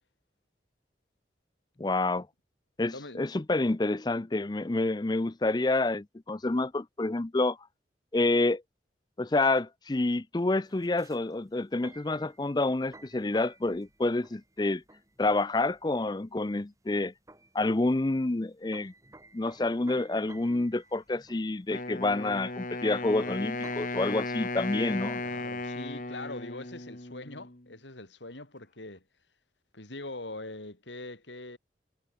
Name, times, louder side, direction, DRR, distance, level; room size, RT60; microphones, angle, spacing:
voice 1, 1.8-2.3 2.8-7.6 8.1-8.6 9.2-14.8 15.2-17.1 17.5-18.9 19.3-25.2, left 2 dB, 25° left, 0.5 m, -28 dB
voice 2, 2.9-3.2 25.2-29.0 29.7-31.6, left 2 dB, 90° left, 4.4 m, -42 dB
sound 1, 10.6-25.3, right 2 dB, 20° right, 6.5 m, -55 dB
Wind instrument woodwind instrument, 21.7-27.7, left 2 dB, 45° left, 2.0 m, -36 dB
head